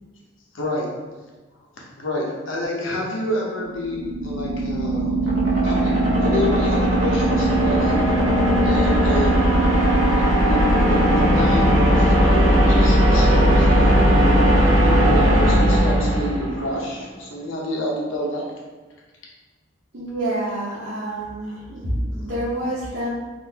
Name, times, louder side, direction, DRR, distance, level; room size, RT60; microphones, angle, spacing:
voice 1, 0.5-0.9 2.0-5.1 5.6-8.0 8.6-9.6 10.4-18.4, left 1 dB, 90° left, -2 dB, 0.8 m, -28 dB
sound 1, 3.7-16.8, equal, 90° right, 0.8 m, -18 dB
voice 2, 19.9-23.1, right 1 dB, 60° right, -9 dB, 0.9 m, -27 dB
3.8 x 2.6 x 2.8 m, 1.3 s
head